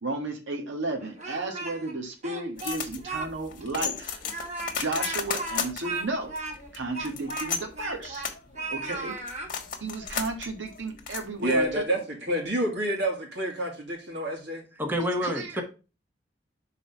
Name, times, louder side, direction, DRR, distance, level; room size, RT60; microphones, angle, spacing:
voice 1, 0.0-4.2 4.8-6.3 6.7-8.3 8.7-9.1 9.8-11.8 15.2-15.6, right 2 dB, 90° right, 1.6 m, -33 dB
Speech, 1.0-1.9 2.2-3.3 3.6-3.7 4.2-8.3 8.5-9.5, right 2 dB, 40° right, 1.5 m, -36 dB
sound 1, 2.6-11.8, left 6 dB, 50° left, 1.2 m, -35 dB
voice 2, 11.4-14.7, equal, 65° right, 2.4 m, -28 dB
voice 3, 14.8-15.6, equal, 10° right, 1.1 m, -28 dB
5.9 x 4.1 x 5.2 m
head